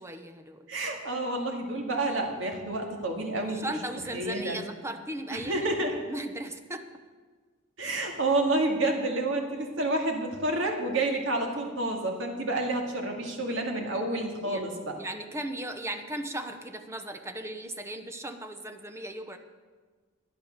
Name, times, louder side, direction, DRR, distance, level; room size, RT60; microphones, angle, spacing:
voice 1, 0.0-0.7 3.4-5.7 6.0-6.9 14.4-14.6 14.9-19.4, right 1 dB, 15° right, 7 dB, 0.8 m, -37 dB
voice 2, 0.7-3.6 4.1-4.6 5.3-6.0 7.8-14.9, right 2 dB, 75° right, 2 dB, 2.2 m, -29 dB
12.0 x 10.0 x 6.6 m, 1.5 s
head